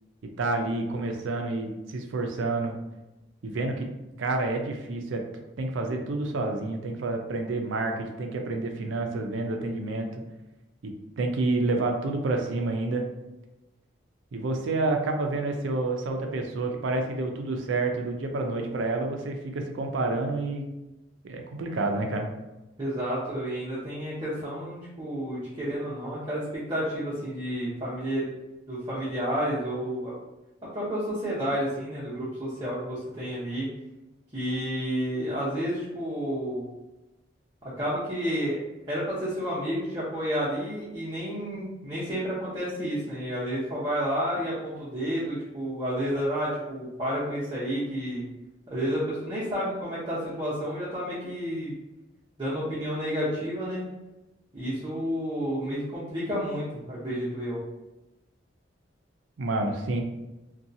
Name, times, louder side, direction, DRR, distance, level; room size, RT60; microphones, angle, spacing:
voice 1, 0.4-2.8 3.4-3.9 4.2-5.2 5.6-10.2 10.8-13.0 14.3-20.6 21.2-22.3 59.4-60.0, right 2 dB, 85° right, 3 dB, 0.4 m, -29 dB
voice 2, 22.8-28.3 28.7-30.1 30.6-33.7 34.3-36.6 37.6-38.6 38.9-48.2 48.7-51.8 52.4-53.8 54.5-57.6, equal, 25° right, -10 dB, 0.8 m, -30 dB
2.7 x 2.3 x 2.6 m, 1.0 s
head